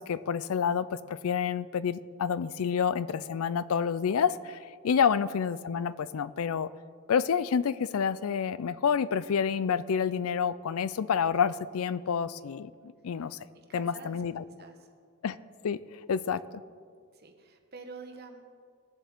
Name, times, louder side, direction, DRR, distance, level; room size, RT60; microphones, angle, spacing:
voice 1, 0.0-4.6 4.8-6.7 7.1-13.4 13.7-14.4 15.2-15.4 15.6-16.4, left 7 dB, 85° left, 16 dB, 0.4 m, -28 dB
voice 2, 13.5-14.2 14.6-14.8 17.1-18.4, right 4 dB, 45° right, 4 dB, 1.2 m, -47 dB
19.0 x 7.4 x 3.6 m, 2.1 s
head